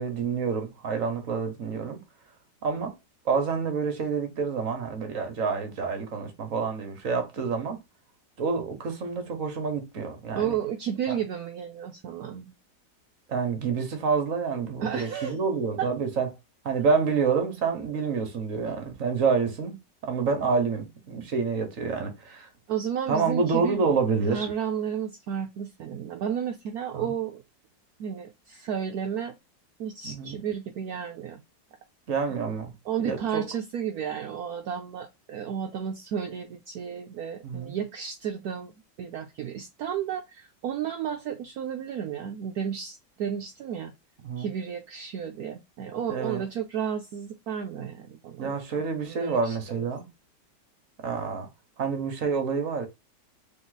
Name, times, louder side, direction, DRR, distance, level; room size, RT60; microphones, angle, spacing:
voice 1, 0.0-2.0 2.6-2.9 3.2-7.8 8.4-10.5 11.1-11.2 13.3-16.3 16.6-19.8 20.0-22.5 23.1-24.5 26.9-27.1 30.0-30.4 32.1-32.7 33.0-33.4 37.4-37.7 44.2-44.5 46.1-46.4 48.4-50.1 51.0-51.5 51.8-52.9, right 5 dB, 50° right, 1.4 m, -28 dB
voice 2, 10.3-12.5 14.8-15.4 15.8-15.9 22.7-23.9 24.3-27.4 28.0-29.4 29.8-31.4 32.8-43.9 44.4-49.9, right 8 dB, 70° right, 1.0 m, -32 dB
3.8 x 3.5 x 3.9 m
omnidirectional pair, 2.0 m